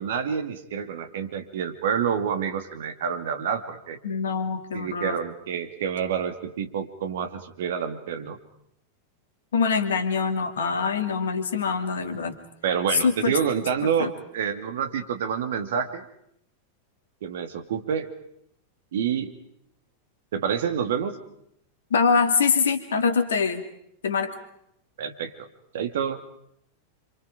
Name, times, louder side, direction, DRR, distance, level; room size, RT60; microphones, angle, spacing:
voice 1, 0.0-4.0 4.7-8.4 12.6-16.0 17.2-18.1 18.9-19.3 20.3-21.2 25.0-25.5 25.7-26.2, right 7 dB, 60° right, 7 dB, 2.4 m, -28 dB
voice 2, 4.0-5.2 9.5-12.3 12.9-13.4 14.0-14.1 21.9-23.6 24.0-24.3, left 5 dB, 65° left, 8 dB, 2.5 m, -24 dB
28.0 x 26.5 x 5.2 m, 0.73 s
figure-of-eight pair, 90°, 0 cm